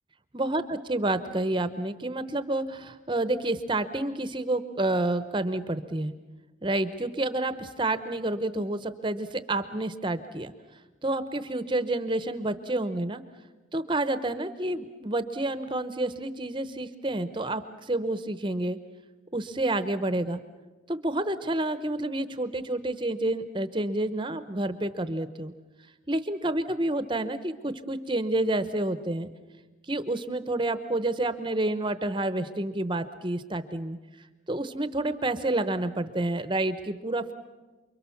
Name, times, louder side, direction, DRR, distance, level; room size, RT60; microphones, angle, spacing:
voice 1, 0.3-6.1 6.6-10.5 11.0-13.2 13.7-18.8 19.3-20.4 20.9-25.5 26.1-29.3 29.8-34.0 34.5-37.3, right 2 dB, 25° right, 11 dB, 0.9 m, -29 dB
29.0 x 23.0 x 7.1 m, 1.2 s
head